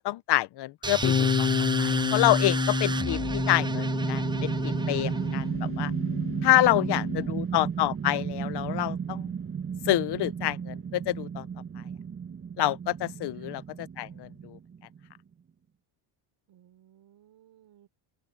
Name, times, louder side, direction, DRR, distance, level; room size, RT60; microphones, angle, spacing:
voice 1, 0.0-5.9 6.4-9.3 9.9-11.5 12.6-13.6 14.0-14.6, left 16 dB, 60° left, 0.8 m, -27 dB
sound 1, 0.8-5.6, right 3 dB, 10° right, 0.5 m, -31 dB
Bass guitar, 1.0-7.3, left 8 dB, 25° left, 0.7 m, -30 dB
sound 2, 2.9-15.1, right 7 dB, 30° right, 1.2 m, -34 dB
voice 2, 6.7-7.6 13.4-13.6 16.5-17.9, right 12 dB, 60° right, 5.5 m, -59 dB
open air
cardioid pair, 105°, 46 cm